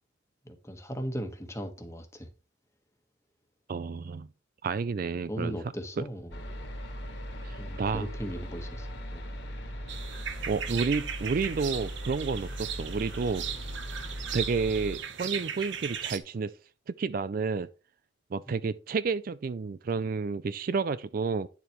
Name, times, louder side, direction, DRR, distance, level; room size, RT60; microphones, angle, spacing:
voice 1, 0.4-2.3 5.3-6.4 7.6-9.2 18.5-18.6, equal, 15° left, 1.4 m, -38 dB
voice 2, 3.7-4.3 4.6-5.6 7.4-8.1 10.5-13.5 14.3-16.5 16.9-17.7 18.3-21.5, right 4 dB, 45° right, 0.3 m, -30 dB
sound 1, 6.3-15.0, equal, 60° left, 2.0 m, -39 dB
sound 2, 9.9-16.2, right 8 dB, 65° right, 1.1 m, -37 dB
10.0 x 7.2 x 3.1 m
head